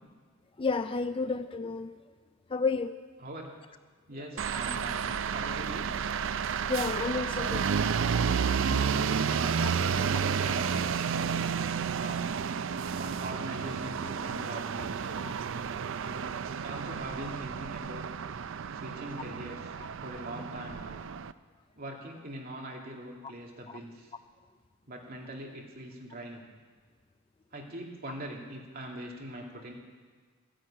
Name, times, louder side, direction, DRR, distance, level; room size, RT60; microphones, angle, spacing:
voice 1, 0.6-2.0 2.5-3.0 6.7-7.7 9.6-9.7 19.8-19.9 23.7-23.8, left 4 dB, 25° left, 11 dB, 0.4 m, -31 dB
voice 2, 4.1-6.0 9.2-11.4 12.0-12.3 13.0-15.2 15.9-16.3 16.6-18.1 18.7-21.0 21.8-24.1 24.9-26.5 27.5-29.7, right 1 dB, 45° right, -1 dB, 2.4 m, -42 dB
sound 1, 4.4-21.3, right 6 dB, 60° right, 0.4 m, -31 dB
14.0 x 10.0 x 8.7 m, 1.5 s
head